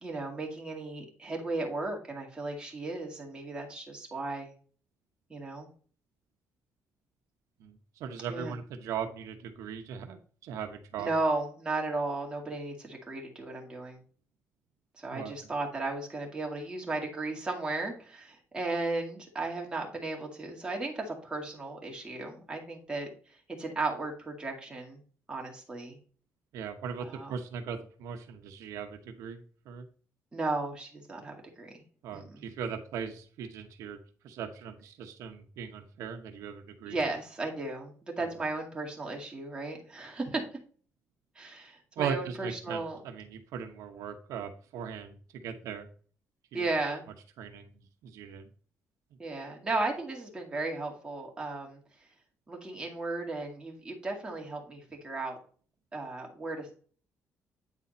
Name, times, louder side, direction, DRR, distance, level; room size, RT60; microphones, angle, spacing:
voice 1, 0.0-4.5 5.3-5.7 8.3-8.5 11.0-14.0 15.0-23.1 23.6-25.0 25.3-26.0 27.0-27.3 30.3-31.7 32.1-32.5 36.8-40.4 41.4-43.0 46.5-47.0 49.2-51.8 52.5-55.4 55.9-56.7, right 2 dB, 15° right, 0 dB, 2.2 m, -35 dB
voice 2, 7.6-11.1 15.1-15.3 26.5-29.9 32.0-34.0 34.2-37.0 38.2-38.3 42.0-45.9 46.5-46.7 47.4-47.7 48.0-48.4, right 7 dB, 90° right, 7 dB, 0.9 m, -39 dB
9.0 x 4.1 x 4.2 m, 0.43 s
cardioid pair, 135°, 5 cm